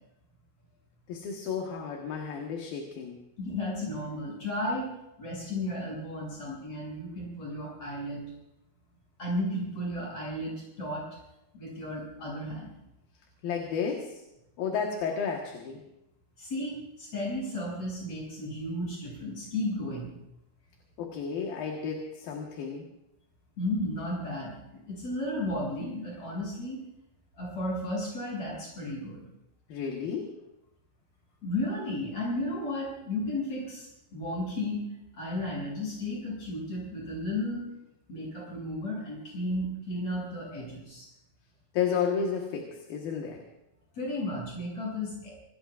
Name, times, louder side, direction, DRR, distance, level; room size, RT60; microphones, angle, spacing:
voice 1, 1.1-3.2 13.4-14.2 14.6-15.8 21.0-22.9 29.7-30.3 41.7-43.4, left 6 dB, 70° left, 1 dB, 3.2 m, -32 dB
voice 2, 3.4-4.9 5.2-8.2 9.2-11.1 11.5-12.7 16.4-20.1 23.6-26.8 27.4-29.2 31.4-34.8 35.1-37.7 38.1-41.1 44.0-45.4, left 1 dB, 40° left, -3 dB, 8.9 m, -34 dB
25.5 x 20.0 x 2.6 m, 0.89 s
omnidirectional pair, 4.6 m